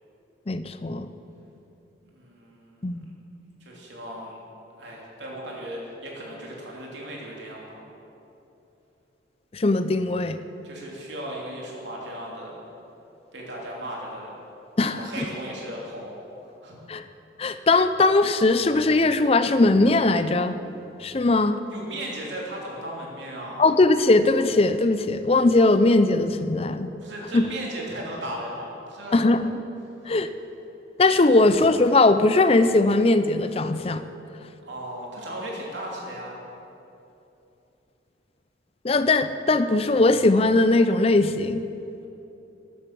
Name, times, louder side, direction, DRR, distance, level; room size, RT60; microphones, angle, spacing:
voice 1, 0.5-1.1 2.8-3.1 9.5-10.4 14.8-15.0 16.9-17.0 17.4-20.6 21.0-21.6 23.6-26.9 27.3-27.4 29.1-29.6 30.1-30.3 31.0-34.0 38.8-41.6, left 2 dB, 30° left, 11 dB, 0.4 m, -20 dB
voice 2, 2.0-3.0 3.6-4.4 4.8-7.8 10.6-12.6 13.3-14.3 14.8-16.1 16.6-16.8 21.7-23.7 27.0-29.2 31.2-31.3 34.6-36.4, right 1 dB, 75° right, -3 dB, 3.0 m, -36 dB
13.5 x 9.9 x 6.0 m, 2.9 s
head